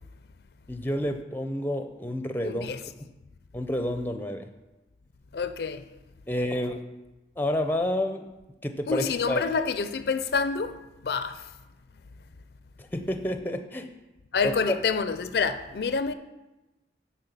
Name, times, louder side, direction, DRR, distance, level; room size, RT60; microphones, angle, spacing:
voice 1, 0.7-2.7 3.5-4.5 6.3-6.8 7.4-8.3 8.6-9.4 12.8-13.9 14.4-14.5, left 1 dB, 10° left, 0.5 m, -29 dB
voice 2, 2.4-2.8 5.3-5.8 8.9-11.4 14.3-16.1, left 5 dB, 65° left, 0.4 m, -28 dB
9.6 x 4.3 x 6.8 m
head